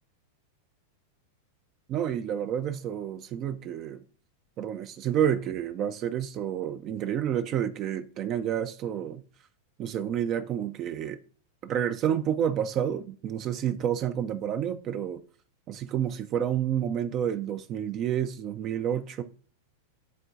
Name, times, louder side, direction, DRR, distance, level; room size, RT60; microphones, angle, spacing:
voice 1, 1.9-4.0 4.6-9.2 9.8-11.2 11.6-15.2 15.7-19.2, right 9 dB, 40° right, 0.4 m, -29 dB
10.5 x 3.6 x 2.7 m
hypercardioid pair, 100°, 0 cm